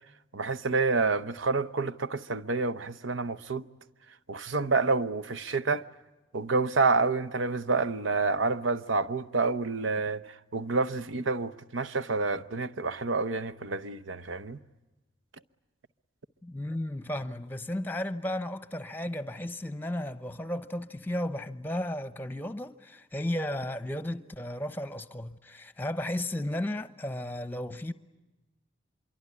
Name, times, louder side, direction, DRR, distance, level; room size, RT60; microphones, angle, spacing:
voice 1, 0.3-3.7 4.3-5.9 6.3-10.2 10.5-14.6, right 3 dB, 80° right, 0.9 m, -28 dB
voice 2, 16.4-27.9, left 1 dB, 10° left, 0.8 m, -34 dB
25.5 x 23.5 x 9.7 m
head